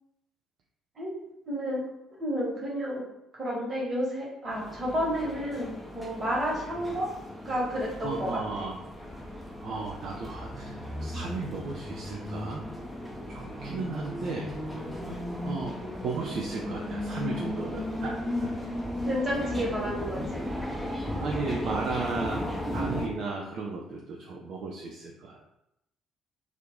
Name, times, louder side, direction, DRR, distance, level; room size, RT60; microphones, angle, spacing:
voice 1, 1.5-1.8 2.2-3.0 3.3-7.1 7.4-8.7 19.0-20.4, equal, 35° right, -4 dB, 1.3 m, -31 dB
sound 1, 4.5-23.1, left 1 dB, 5° right, 0.7 m, -35 dB
voice 2, 8.0-8.7 9.6-12.6 13.3-14.5 15.4-15.8 16.0-18.5 21.2-25.4, right 4 dB, 50° right, 0 dB, 0.4 m, -35 dB
2.7 x 2.4 x 3.5 m, 0.85 s
figure-of-eight pair, 45°, 0 cm